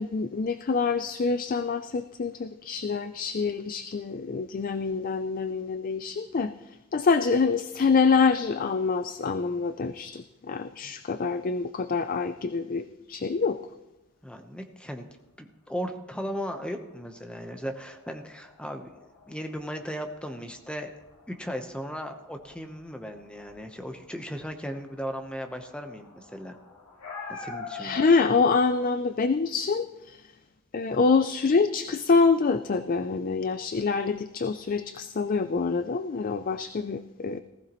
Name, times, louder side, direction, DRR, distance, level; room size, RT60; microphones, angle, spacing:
voice 1, 0.0-13.6 27.8-30.3 30.7-37.4, left 4 dB, 40° left, 11 dB, 0.4 m, -26 dB
voice 2, 14.2-15.1 15.4-18.9 19.3-20.9 21.3-26.6 27.3-28.0, equal, 5° left, 5 dB, 0.9 m, -36 dB
sound 1, 16.1-28.6, left 4 dB, 90° left, 2.4 m, -46 dB
19.0 x 14.5 x 3.1 m, 1.0 s
head